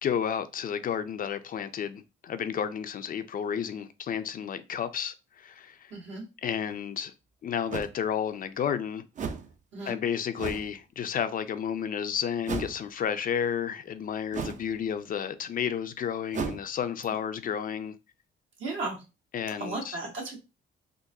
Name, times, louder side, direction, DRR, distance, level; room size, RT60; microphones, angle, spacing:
voice 1, 0.0-5.9 6.4-7.1 7.4-9.1 9.8-18.0 19.3-20.0, left 8 dB, 45° left, 0.4 m, -31 dB
voice 2, 5.9-6.2 9.7-9.9 18.6-19.0 19.6-20.4, right 3 dB, 70° right, 1.6 m, -35 dB
sound 1, 6.7-6.8 7.7-7.9 9.2-9.5 10.4-10.7 12.4-12.8 14.3-14.7 16.3-16.6, right 5 dB, 40° right, 0.5 m, -34 dB
3.8 x 2.6 x 2.6 m
cardioid pair, 90°, 20 cm